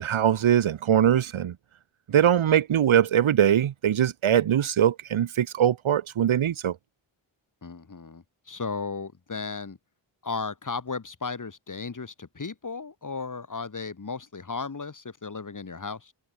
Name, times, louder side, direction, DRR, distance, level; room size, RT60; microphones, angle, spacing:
voice 1, 0.0-1.5 2.1-6.7, right 10 dB, 70° right, 0.9 m, -22 dB
voice 2, 7.6-9.8 10.2-16.1, left 4 dB, 40° left, 2.9 m, -35 dB
wide cardioid pair, 135°, 50 cm